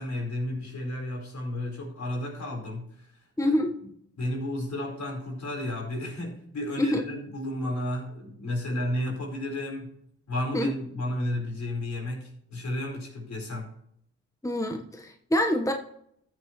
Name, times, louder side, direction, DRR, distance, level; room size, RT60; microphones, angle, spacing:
voice 1, 0.0-2.9 3.4-3.6 4.2-9.9 10.3-13.7, left 1 dB, 65° left, 0 dB, 4.5 m, -32 dB
voice 2, 3.4-3.7 6.8-7.0 10.5-10.7 14.4-15.7, left 1 dB, 10° left, 4 dB, 1.3 m, -26 dB
13.5 x 7.2 x 3.2 m, 0.70 s
supercardioid pair, 40°, 31 cm